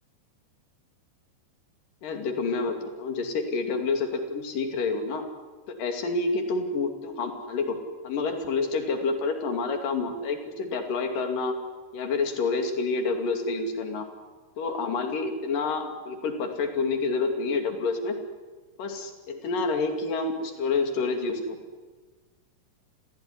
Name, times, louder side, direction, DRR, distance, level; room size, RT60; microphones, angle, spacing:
voice 1, 2.0-5.2 5.7-7.8 8.0-11.6 11.9-14.1 14.6-18.2 18.8-21.6, left 4 dB, 50° left, 5 dB, 3.9 m, -28 dB
28.0 x 16.0 x 10.0 m, 1.3 s
omnidirectional pair, 5.3 m